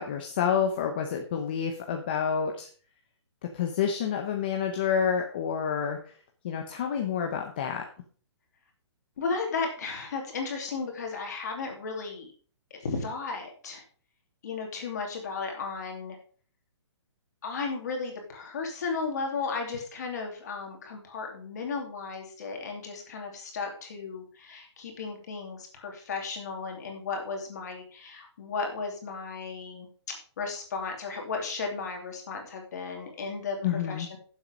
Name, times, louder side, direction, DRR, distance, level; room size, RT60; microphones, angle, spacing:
voice 1, 0.0-2.7 3.4-6.1 6.4-7.8 33.6-34.1, left 7 dB, 20° left, 3 dB, 0.7 m, -28 dB
voice 2, 9.2-12.3 12.7-13.8 14.4-16.2 17.4-34.1, left 4 dB, 35° left, 2 dB, 2.7 m, -35 dB
11.0 x 7.4 x 5.1 m, 0.43 s
hypercardioid pair, 180°, 15 cm